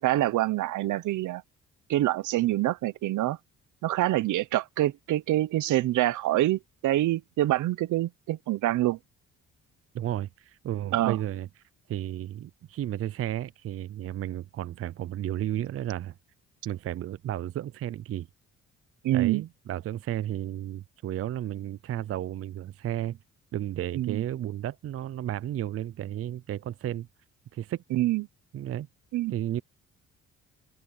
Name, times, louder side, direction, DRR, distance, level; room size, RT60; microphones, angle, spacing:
voice 1, 0.0-1.4 1.9-3.4 3.8-9.0 10.9-11.2 19.0-19.4 23.9-24.2 27.9-28.2 29.1-29.3, right 15 dB, 80° right, 0.9 m, -26 dB
voice 2, 9.9-11.5 11.9-16.2 16.6-18.3 19.1-23.2 23.5-27.1 27.5-27.8 28.5-28.9 29.3-29.6, right 12 dB, 50° right, 0.5 m, -33 dB
open air
cardioid pair, 90°, 30 cm